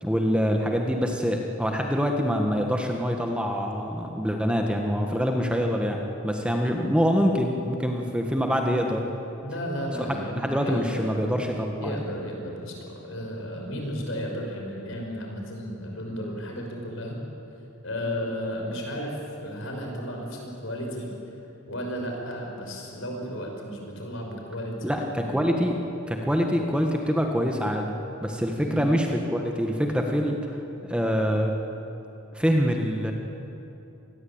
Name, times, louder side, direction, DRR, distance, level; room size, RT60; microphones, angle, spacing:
voice 1, 0.0-9.0 10.0-10.1 10.3-12.0 24.8-25.8 26.1-30.4 30.9-31.5 32.3-33.1, equal, 5° right, 2 dB, 1.7 m, -25 dB
voice 2, 9.4-11.4 11.8-17.2 17.8-21.4 21.6-25.4 28.6-28.8, equal, 65° left, 1 dB, 6.1 m, -34 dB
26.5 x 20.5 x 9.0 m, 2.9 s
head